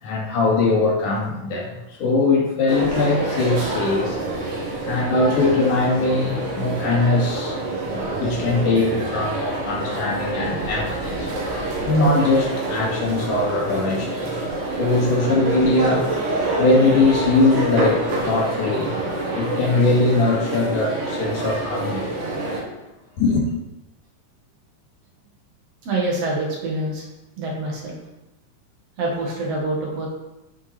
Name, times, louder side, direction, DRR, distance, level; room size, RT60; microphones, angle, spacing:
voice 1, 0.0-4.2 4.8-7.6 7.8-11.3 11.8-14.5 14.8-16.1 16.6-18.9 19.3-22.2 23.2-23.5, left 3 dB, 70° left, -4 dB, 3.7 m, -21 dB
sound 1, 2.7-22.6, right 2 dB, 75° right, 3.6 m, -27 dB
voice 2, 25.8-27.1 27.4-28.0 29.0-30.1, right 2 dB, 50° right, -2 dB, 2.8 m, -26 dB
10.5 x 6.2 x 4.5 m, 0.97 s
omnidirectional pair, 3.8 m